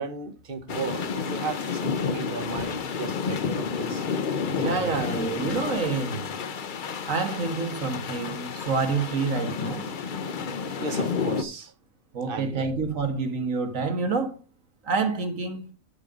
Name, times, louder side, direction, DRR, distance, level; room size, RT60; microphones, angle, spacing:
voice 1, 0.0-4.0 4.6-5.5 10.7-11.7 12.2-12.7, right 4 dB, 45° right, 1.3 m, -35 dB
sound 1, 0.7-11.4, left 6 dB, 45° left, 0.8 m, -30 dB
voice 2, 4.6-6.2 7.1-9.8 12.1-14.3 14.8-15.7, right 4 dB, 75° right, 1.9 m, -27 dB
11.0 x 5.4 x 5.0 m
omnidirectional pair, 1.4 m